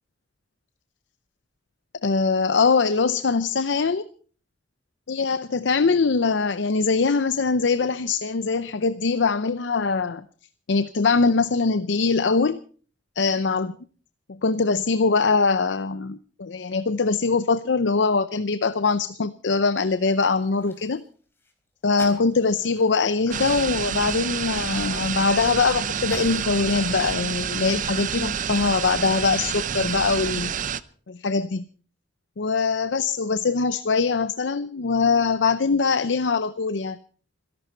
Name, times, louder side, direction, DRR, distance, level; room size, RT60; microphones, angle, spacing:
voice 1, 2.0-4.0 5.1-10.2 10.7-12.6 13.2-13.7 14.4-21.0 21.8-30.5 31.1-31.6 32.4-37.0, left 4 dB, 85° left, 14 dB, 0.6 m, -22 dB
sound 1, 20.1-21.1 21.4-21.5 21.9-25.6 26.0-27.2, left 1 dB, 15° left, 4.2 m, -46 dB
sound 2, 23.3-30.8, right 7 dB, 45° right, 0.7 m, -28 dB
26.0 x 11.5 x 4.5 m, 0.43 s
head